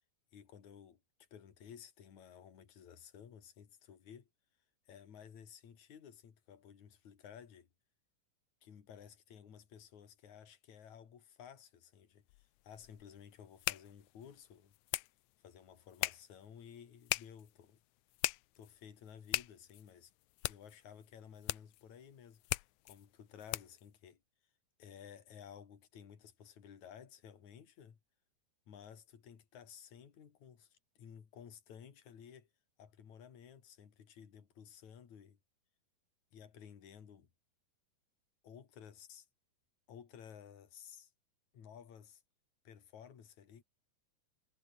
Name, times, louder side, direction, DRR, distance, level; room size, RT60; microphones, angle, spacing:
voice 1, 0.3-1.0 1.3-4.3 4.9-7.7 8.6-14.7 15.4-17.8 18.6-20.1 20.5-22.4 22.8-24.2 24.8-28.0 28.7-32.5 32.8-35.4 36.3-37.3 38.4-39.3 39.9-41.1 41.5-42.2 42.6-43.6, left 8 dB, 55° left, 4.0 m, -55 dB
sound 1, 12.3-23.9, left 19 dB, 85° left, 1.7 m, -42 dB
omnidirectional pair, 4.0 m